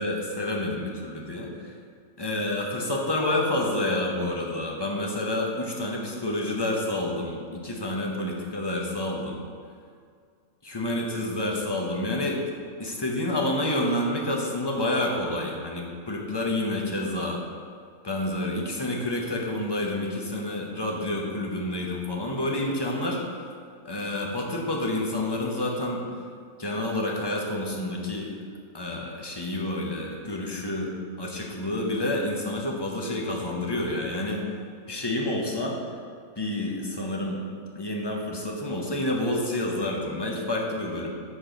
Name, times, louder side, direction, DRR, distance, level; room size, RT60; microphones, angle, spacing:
voice 1, 0.0-1.7 2.2-9.4 10.6-12.4 12.8-17.4 18.0-23.2 23.8-26.0 26.6-28.3 28.7-34.4 34.9-35.8 36.4-37.4 37.7-41.1, left 1 dB, 25° left, -1 dB, 0.7 m, -29 dB
7.4 x 4.3 x 5.1 m, 2.1 s
omnidirectional pair, 1.5 m